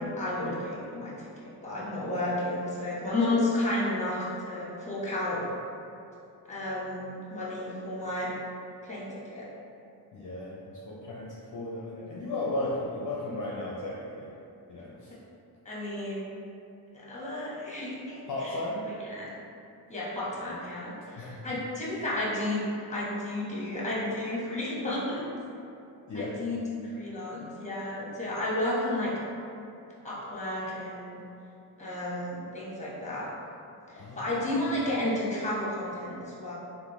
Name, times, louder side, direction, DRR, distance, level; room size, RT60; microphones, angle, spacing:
voice 1, 0.0-5.5 6.5-8.3 8.8-9.4 15.6-16.2 16.9-18.6 19.1-19.3 19.9-22.6 22.9-25.3 26.1-29.1 30.0-31.2 31.8-33.3 33.9-36.5, left 1 dB, 15° left, -7 dB, 1.0 m, -32 dB
voice 2, 10.1-14.3 14.7-15.1 18.3-18.9 21.0-21.5 26.1-26.4 34.0-34.7, left 2 dB, 45° left, -5 dB, 0.5 m, -35 dB
3.4 x 2.2 x 3.0 m, 2.7 s
cardioid pair, 55°, 44 cm